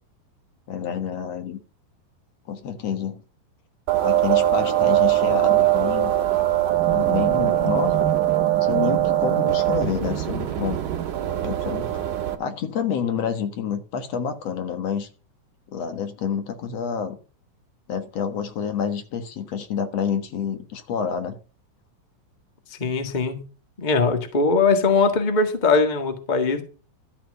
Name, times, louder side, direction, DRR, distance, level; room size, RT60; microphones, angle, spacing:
voice 1, 0.7-1.6 2.5-3.2 4.0-6.2 6.9-8.1 8.6-10.8 11.4-11.9 12.4-15.1 15.7-17.2 17.9-21.4, left 7 dB, 55° left, 2.1 m, -28 dB
sound 1, 3.9-12.3, right 13 dB, 65° right, 3.0 m, -21 dB
voice 2, 22.8-23.4 23.8-26.6, left 4 dB, 85° left, 0.4 m, -20 dB
13.0 x 6.0 x 7.8 m
omnidirectional pair, 4.2 m